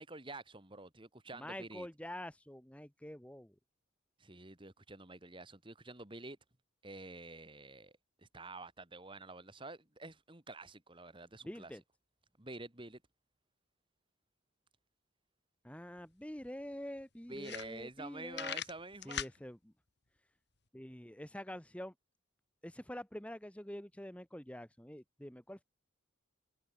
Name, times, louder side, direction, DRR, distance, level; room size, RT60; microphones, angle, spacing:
voice 1, 0.0-1.9 4.2-6.4 6.8-7.9 8.2-11.7 12.4-13.0 17.3-19.2, right 2 dB, 25° right, 2.0 m, -48 dB
voice 2, 1.3-3.6 11.5-11.8 15.6-18.6 19.0-19.7 20.7-21.9 22.6-25.6, left 1 dB, 5° left, 1.0 m, -46 dB
sound 1, 16.0-16.1 16.4-16.5 17.0-17.1 17.4-18.1 18.3-19.4, left 9 dB, 55° left, 2.0 m, -40 dB
head